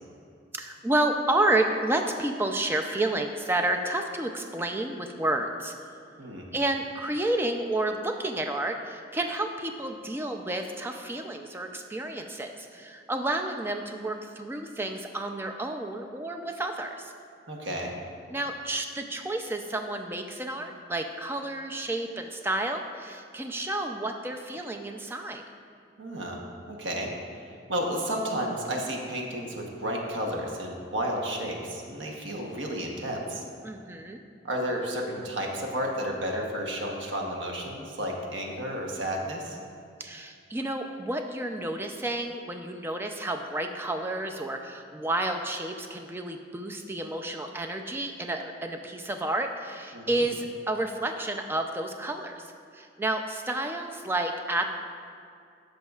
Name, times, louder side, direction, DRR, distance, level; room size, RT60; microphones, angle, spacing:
voice 1, 0.5-5.7 6.5-17.1 18.3-25.4 33.6-34.2 40.0-54.7, right 1 dB, 10° right, 4 dB, 0.3 m, -30 dB
voice 2, 17.5-17.9 26.0-26.4 26.7-27.4 27.7-33.4 34.4-39.6 49.9-50.3, equal, 90° right, 0 dB, 1.0 m, -32 dB
13.0 x 5.2 x 2.4 m, 2.4 s
head